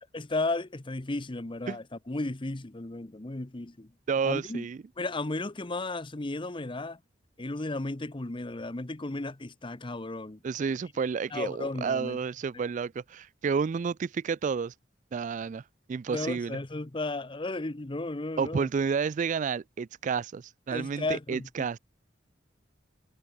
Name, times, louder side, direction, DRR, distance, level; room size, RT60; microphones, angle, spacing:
voice 1, 0.1-3.9 4.2-4.7 5.0-7.0 7.4-10.4 11.3-12.2 16.1-18.7 20.7-21.7, left 2 dB, 25° left, 0.9 m, -34 dB
voice 2, 4.1-4.8 10.4-14.7 15.1-15.6 15.9-16.6 18.4-21.8, right 6 dB, 40° right, 0.3 m, -30 dB
head